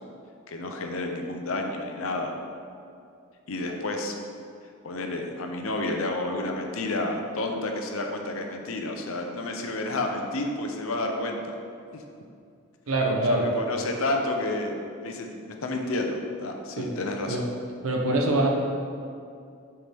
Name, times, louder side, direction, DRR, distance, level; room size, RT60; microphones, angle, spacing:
voice 1, 0.5-2.4 3.5-4.1 4.8-11.4 11.9-12.0 13.3-14.8 15.0-15.3 15.6-17.5, left 2 dB, 75° left, 3 dB, 0.7 m, -30 dB
voice 2, 12.9-13.5 16.8-16.9 17.3-17.4 17.8-18.6, right 2 dB, 80° right, 1 dB, 0.9 m, -24 dB
7.4 x 4.5 x 3.6 m, 2.4 s
head